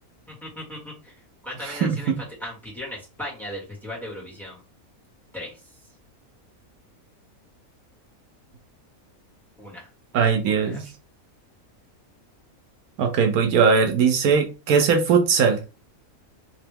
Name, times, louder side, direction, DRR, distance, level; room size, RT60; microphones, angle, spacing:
voice 1, 0.3-1.2 1.4-4.6 5.3-5.6 9.6-9.9 10.2-10.9, left 1 dB, ahead, -5 dB, 1.8 m, -37 dB
voice 2, 1.6-2.2 10.1-10.9 13.0-15.6, right 6 dB, 80° right, 5 dB, 1.2 m, -20 dB
3.4 x 2.9 x 3.4 m, 0.31 s
omnidirectional pair, 1.5 m